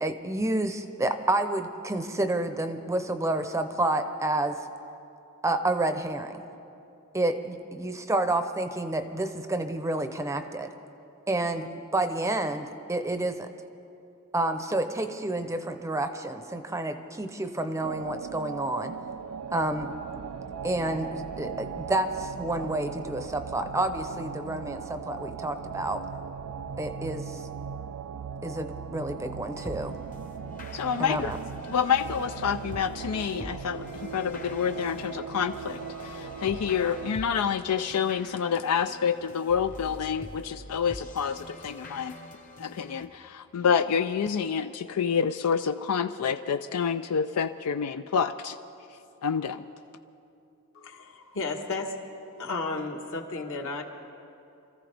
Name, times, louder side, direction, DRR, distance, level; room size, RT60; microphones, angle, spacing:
voice 1, 0.0-4.6 5.4-6.3 7.1-10.7 11.3-13.5 14.3-18.9 19.5-19.9 20.6-26.0 26.8-27.4 28.4-30.0 31.0-31.4, right 2 dB, 15° right, 8 dB, 0.6 m, -29 dB
sound 1, 17.8-37.2, right 6 dB, 90° right, 0.4 m, -38 dB
sound 2, 29.5-43.0, left 1 dB, 35° left, 1.0 m, -45 dB
voice 2, 30.7-31.3 31.7-42.1 42.6-48.5 49.2-49.6, left 7 dB, 80° left, 10 dB, 0.4 m, -28 dB
voice 3, 50.7-52.0 52.3-53.8, left 3 dB, 65° left, 2 dB, 1.4 m, -33 dB
26.0 x 14.5 x 3.4 m, 2.7 s
head